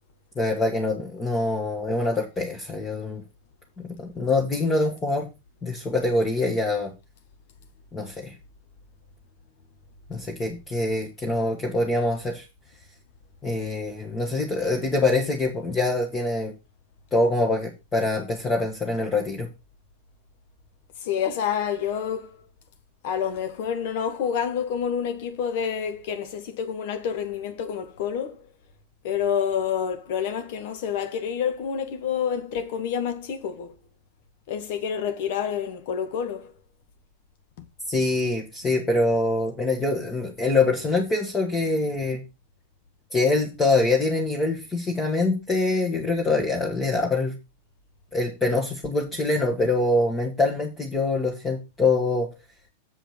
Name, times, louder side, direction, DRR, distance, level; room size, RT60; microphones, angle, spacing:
voice 1, 0.4-3.2 3.8-5.3 5.6-6.9 7.9-8.3 10.1-12.4 13.4-16.5 17.1-19.5 37.9-42.2 43.1-47.4 48.1-52.3, left 2 dB, 20° left, 2.0 m, -24 dB
voice 2, 21.0-22.5 23.0-28.4 29.0-33.7 34.5-36.5 37.6-37.7 49.6-49.7, left 8 dB, 50° left, 1.5 m, -28 dB
8.0 x 5.1 x 6.5 m
figure-of-eight pair, 90°, 0 cm